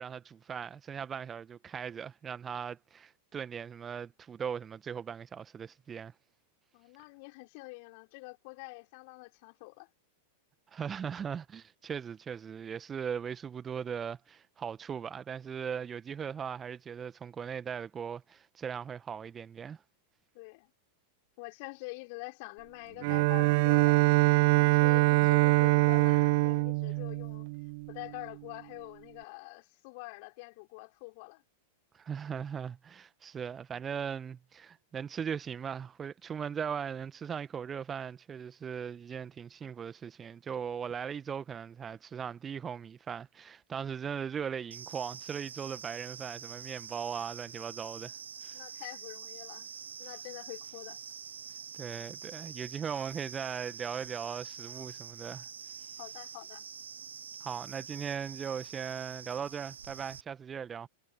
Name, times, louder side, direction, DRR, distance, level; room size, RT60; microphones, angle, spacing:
voice 1, 0.0-6.1 10.7-19.8 31.9-48.1 48.4-48.6 51.8-55.5 57.4-60.9, right 7 dB, 20° right, 1.4 m, -39 dB
voice 2, 6.7-9.9 20.3-20.7 21.4-24.2 24.6-27.5 27.9-31.4 48.5-49.7 50.0-51.0 56.0-56.7, left 29 dB, 45° left, 4.6 m, -46 dB
Bowed string instrument, 23.0-28.1, right 26 dB, 45° right, 0.3 m, -24 dB
sound 1, 44.7-60.2, right 7 dB, 70° right, 0.7 m, -46 dB
figure-of-eight pair, 95°, 0 cm